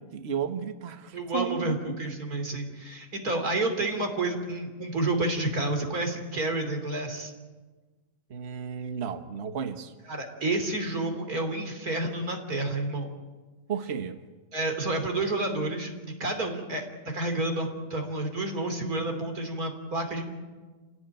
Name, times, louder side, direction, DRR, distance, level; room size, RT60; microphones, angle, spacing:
voice 1, 0.0-2.1 8.3-9.9 13.7-14.2, right 7 dB, 45° right, 1.4 m, -33 dB
voice 2, 1.1-7.3 10.1-13.1 14.5-15.9 16.2-20.2, right 2 dB, 65° right, 3.7 m, -30 dB
28.5 x 17.5 x 9.0 m
omnidirectional pair, 1.7 m